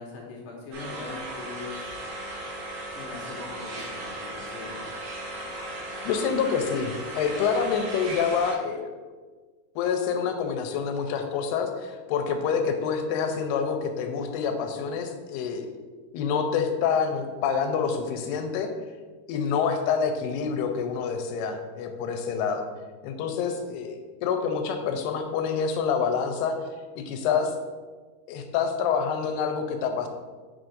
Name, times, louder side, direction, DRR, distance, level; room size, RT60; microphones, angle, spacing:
voice 1, 0.0-1.8 3.0-4.8 19.3-19.5, left 3 dB, 70° left, -2 dB, 2.3 m, -41 dB
sound 1, 0.7-8.5, right 1 dB, 70° right, 3.3 m, -36 dB
voice 2, 6.1-8.9 9.8-15.7 16.1-18.7 19.3-22.7 23.0-26.6 27.0-27.5 28.3-30.1, left 6 dB, 85° left, 5 dB, 2.6 m, -27 dB
6.9 x 6.1 x 2.6 m, 1.4 s
omnidirectional pair, 4.6 m